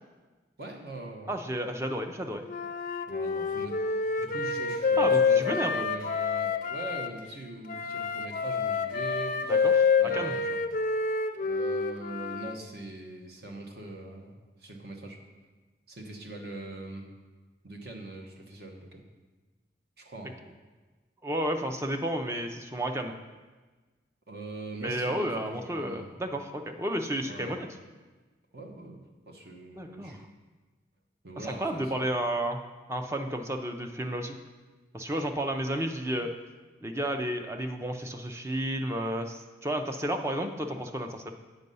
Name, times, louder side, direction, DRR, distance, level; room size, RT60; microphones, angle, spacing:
voice 1, 0.6-1.3 3.1-10.6 11.4-15.2 15.9-17.1 17.6-19.0 20.0-20.4 24.3-26.1 27.3-27.6 28.5-29.0 29.3-30.2 31.2-31.9, right 2 dB, 55° right, 2 dB, 1.1 m, -42 dB
voice 2, 1.3-2.4 5.0-5.9 9.5-10.3 21.2-23.1 24.8-27.7 29.7-30.2 31.4-32.6 32.9-34.3 34.9-36.3 36.8-41.3, right 1 dB, 15° right, 5 dB, 0.5 m, -32 dB
Wind instrument woodwind instrument, 2.5-7.1 7.7-12.5, left 5 dB, 45° left, 0.4 m, -27 dB
8.0 x 5.4 x 5.4 m, 1.3 s
head